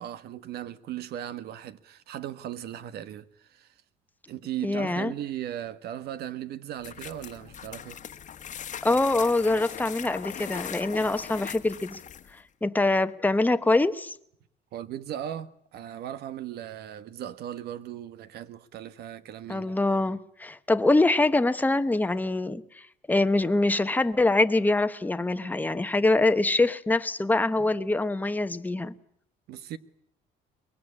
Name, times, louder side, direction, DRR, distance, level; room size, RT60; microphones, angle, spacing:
voice 1, 0.0-3.7 4.3-8.0 14.7-19.8 29.5-29.8, right 11 dB, 70° right, 1.3 m, -37 dB
voice 2, 4.6-5.1 8.8-12.0 12.6-14.2 19.5-29.0, left 2 dB, 10° left, 1.1 m, -24 dB
sound 1, 6.8-12.4, left 9 dB, 45° left, 1.3 m, -40 dB
23.5 x 20.5 x 9.8 m
cardioid pair, 110°, 17 cm